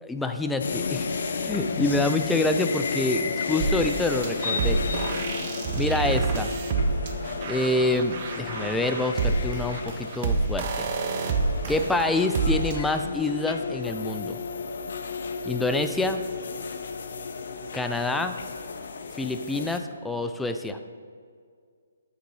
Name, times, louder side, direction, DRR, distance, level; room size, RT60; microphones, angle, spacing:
voice 1, 0.0-1.1 1.4-4.8 5.7-6.5 7.4-10.9 11.7-14.4 15.4-16.2 17.7-18.4 19.2-20.8, left 2 dB, 5° left, 6 dB, 0.3 m, -27 dB
sound 1, 0.6-19.8, left 5 dB, 60° left, 0.6 m, -33 dB
sound 2, 3.6-13.0, right 4 dB, 40° right, 0.6 m, -28 dB
Guitar, 4.4-13.2, right 2 dB, 80° right, 0.7 m, -46 dB
8.4 x 3.8 x 4.7 m, 2.1 s
hypercardioid pair, 145°, 0 cm